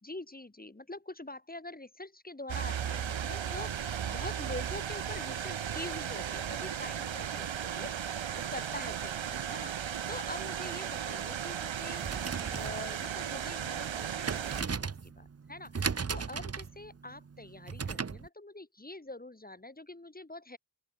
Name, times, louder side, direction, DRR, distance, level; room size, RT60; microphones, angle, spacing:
voice 1, 0.0-20.6, left 2 dB, 20° left, 2.6 m, -45 dB
sound 1, 2.5-14.6, right 8 dB, 85° right, 1.7 m, -36 dB
sound 2, 11.9-18.3, right 5 dB, 35° right, 0.9 m, -37 dB
open air
cardioid pair, 65°, 45 cm